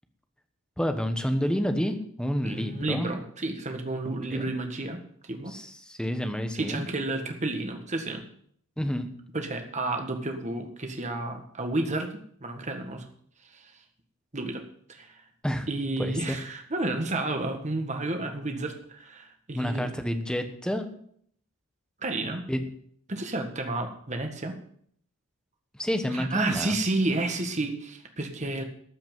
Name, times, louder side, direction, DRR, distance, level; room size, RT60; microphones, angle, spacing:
voice 1, 0.8-3.1 4.3-4.4 5.5-6.9 8.8-9.1 15.4-15.7 16.0-16.4 19.5-20.9 22.5-22.6 25.8-26.8, equal, 5° left, 7 dB, 1.1 m, -29 dB
voice 2, 2.4-5.5 6.5-8.2 9.3-13.1 13.4-13.7 14.3-14.6 14.9-15.2 15.7-19.9 22.0-22.4 23.1-24.5 26.1-28.6, right 2 dB, 30° right, 4 dB, 1.7 m, -31 dB
13.5 x 5.9 x 9.2 m, 0.64 s
head